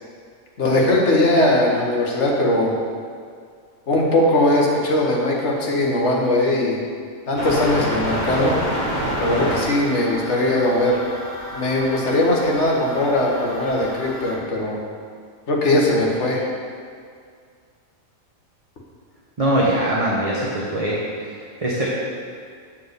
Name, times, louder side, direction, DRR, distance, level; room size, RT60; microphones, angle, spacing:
voice 1, 0.6-2.7 3.9-6.8 7.3-8.5 9.2-11.0 11.5-14.8 15.5-16.4, left 1 dB, 55° left, -2 dB, 1.6 m, -19 dB
sound 1, 7.4-14.4, equal, 35° left, 1.1 m, -28 dB
voice 2, 19.4-21.9, right 1 dB, 30° right, -7 dB, 1.0 m, -22 dB
7.5 x 4.3 x 6.7 m, 2.2 s
omnidirectional pair, 1.4 m